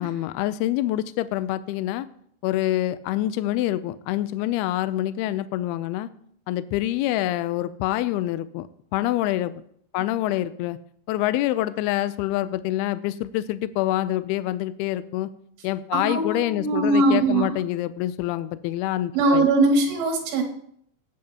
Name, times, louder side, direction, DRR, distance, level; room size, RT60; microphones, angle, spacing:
voice 1, 0.0-2.1 2.4-6.1 6.5-8.7 8.9-9.6 9.9-10.8 11.1-15.3 15.6-19.5, left 14 dB, 90° left, 14 dB, 2.2 m, -26 dB
voice 2, 15.9-17.5 19.1-20.4, right 2 dB, 70° right, 2 dB, 3.8 m, -21 dB
17.0 x 8.7 x 2.9 m, 0.66 s
omnidirectional pair, 5.1 m